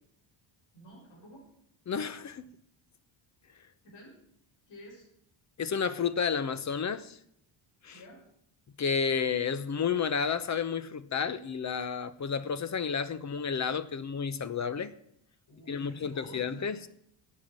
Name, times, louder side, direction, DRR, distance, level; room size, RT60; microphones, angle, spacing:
voice 1, 0.7-1.5 3.8-4.2 4.7-5.1 7.9-8.2 15.5-16.7, equal, 60° left, -3 dB, 6.2 m, -50 dB
voice 2, 1.9-2.5 5.6-7.2 7.8-8.0 8.8-14.9 15.7-16.8, left 6 dB, 35° left, 14 dB, 0.9 m, -31 dB
13.0 x 8.7 x 7.6 m, 0.71 s
cardioid pair, 115°, 47 cm